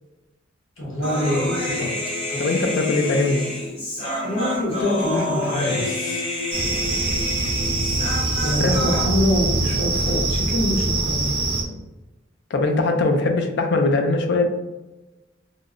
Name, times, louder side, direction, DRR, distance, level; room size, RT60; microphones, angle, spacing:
voice 1, 0.8-1.9 2.3-2.4 4.2-6.2 8.4-11.2, left 1 dB, 80° left, -4 dB, 1.0 m, -25 dB
Human voice, 1.0-9.0, left 2 dB, 30° left, 0.7 m, -28 dB
voice 2, 2.4-3.4 8.6-8.8 12.5-14.5, left 2 dB, 60° left, 4 dB, 0.4 m, -21 dB
sound 1, 6.5-11.6, right 2 dB, 30° right, 0.4 m, -23 dB
2.7 x 2.0 x 2.4 m, 1.1 s
head